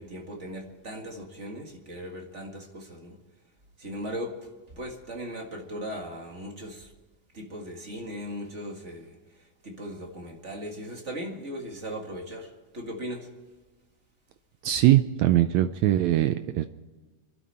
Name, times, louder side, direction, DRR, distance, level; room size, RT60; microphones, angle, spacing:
voice 1, 0.0-3.2 3.8-4.5 4.7-6.9 7.3-13.3, equal, 30° right, 2 dB, 1.5 m, -38 dB
voice 2, 14.6-16.7, right 14 dB, 80° right, 10 dB, 1.6 m, -21 dB
26.0 x 12.5 x 4.3 m, 1.3 s
omnidirectional pair, 3.8 m